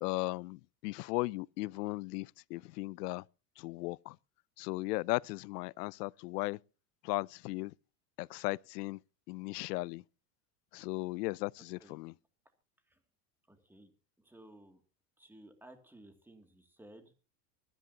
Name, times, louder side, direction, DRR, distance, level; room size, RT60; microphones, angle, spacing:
voice 1, 0.0-3.2 3.6-4.2 4.6-6.6 7.0-7.7 8.2-9.0 9.3-10.0 10.7-12.1, left 22 dB, 80° left, 0.6 m, -36 dB
voice 2, 13.5-13.9 14.2-14.8 15.2-17.2, right 1 dB, 5° right, 2.3 m, -56 dB
24.5 x 10.5 x 2.8 m
supercardioid pair, 125°, 47 cm